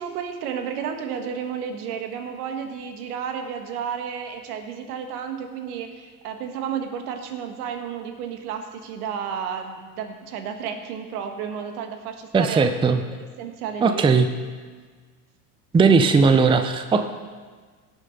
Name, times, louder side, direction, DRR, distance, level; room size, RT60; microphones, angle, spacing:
voice 1, 0.0-12.6 13.4-14.1, right 7 dB, 70° right, 6 dB, 1.8 m, -32 dB
voice 2, 12.3-13.0 13.8-14.3 15.7-17.1, right 4 dB, 10° right, 8 dB, 0.6 m, -18 dB
18.0 x 6.6 x 5.4 m, 1.5 s
hypercardioid pair, 90°, 46 cm